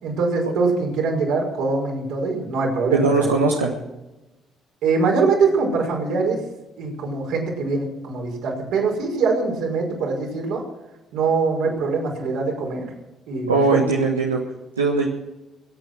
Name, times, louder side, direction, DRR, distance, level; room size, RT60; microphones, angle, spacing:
voice 1, 0.0-3.3 4.8-6.4 6.8-10.6 11.1-12.9 13.3-13.8, right 4 dB, 70° right, 0 dB, 5.5 m, -23 dB
voice 2, 2.9-3.7 13.5-14.4 14.8-15.1, right 3 dB, 90° right, -1 dB, 1.5 m, -19 dB
24.5 x 8.9 x 6.1 m, 1.0 s
hypercardioid pair, 45°, 0 cm